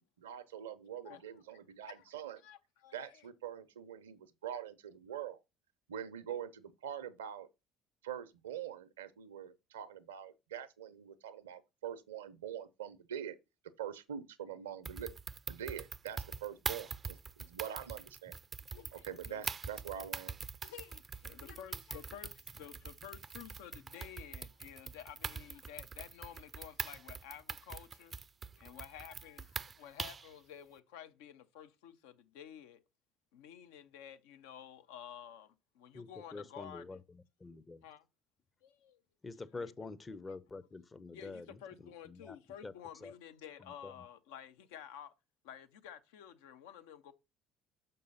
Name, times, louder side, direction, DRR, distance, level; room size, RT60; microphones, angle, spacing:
voice 1, 0.2-2.4 2.9-5.4 5.9-7.5 8.0-13.4 13.8-15.1 15.5-18.3 18.9-20.4, right 9 dB, 80° right, 0.6 m, -44 dB
voice 2, 1.0-1.4 1.9-2.1 2.4-3.2 18.7-19.5 20.6-28.2 28.5-32.8 33.3-37.0 37.8-38.1 38.6-39.0 39.5-39.9 41.1-45.1 45.4-47.1, left 9 dB, 70° left, 0.6 m, -52 dB
sound 1, 14.9-30.3, right 5 dB, 35° right, 0.4 m, -44 dB
voice 3, 35.9-37.8 39.2-41.6 42.0-42.4 42.6-42.7 43.0-43.1 43.6-44.0, left 3 dB, 25° left, 0.7 m, -47 dB
6.5 x 5.4 x 4.0 m
hypercardioid pair, 55°, 0 cm